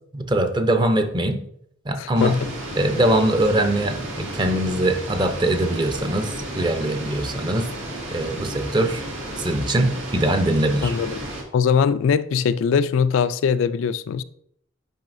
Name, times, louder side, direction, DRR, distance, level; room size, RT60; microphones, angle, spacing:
voice 1, 0.1-1.4 1.9-2.3 2.8-7.7 8.1-9.0 9.4-10.9, right 1 dB, 25° right, 0.6 m, -22 dB
voice 2, 2.0-2.5 10.8-11.2 11.5-14.2, left 6 dB, 70° left, 0.3 m, -21 dB
sound 1, 2.1-11.4, right 1 dB, 75° right, 2.0 m, -33 dB
9.0 x 5.4 x 2.6 m
head